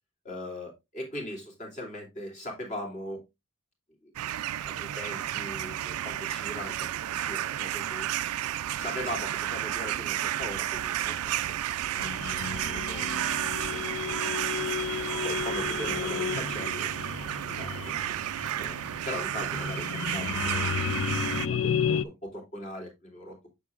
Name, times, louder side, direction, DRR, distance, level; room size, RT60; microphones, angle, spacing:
voice 1, 0.2-3.2 4.0-4.1 4.6-8.1 8.8-14.3 14.9-17.9 18.6-23.3, left 1 dB, 35° left, 0 dB, 2.8 m, -40 dB
sound 1, 4.2-21.5, right 12 dB, 90° right, 0.3 m, -32 dB
sound 2, 12.0-22.1, left 7 dB, 60° left, 0.4 m, -33 dB
8.3 x 6.5 x 2.4 m, 0.21 s
head